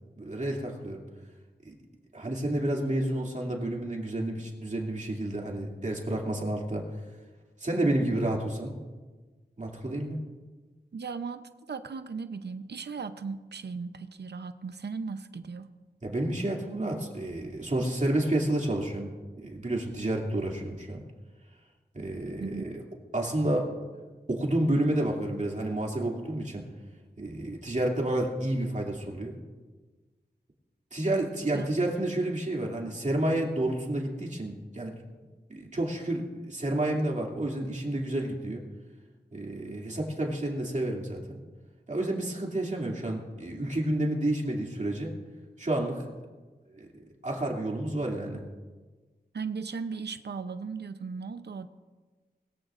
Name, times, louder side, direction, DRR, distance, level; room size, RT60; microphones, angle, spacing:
voice 1, 0.2-1.0 1.6-1.7 2.1-6.8 7.6-8.7 9.6-10.2 16.0-19.1 19.4-21.0 21.9-22.8 23.1-23.7 24.3-26.6 27.2-29.4 30.9-34.9 35.5-38.6 39.3-41.4 41.9-45.2 45.6-46.1 46.7-46.9 47.2-48.4, right 1 dB, 45° right, -1 dB, 2.6 m, -30 dB
voice 2, 10.9-15.7 22.4-22.6 31.5-31.7 49.3-51.7, right 5 dB, 80° right, 10 dB, 0.7 m, -37 dB
21.5 x 14.5 x 2.5 m, 1.3 s
wide cardioid pair, 70°, 17 cm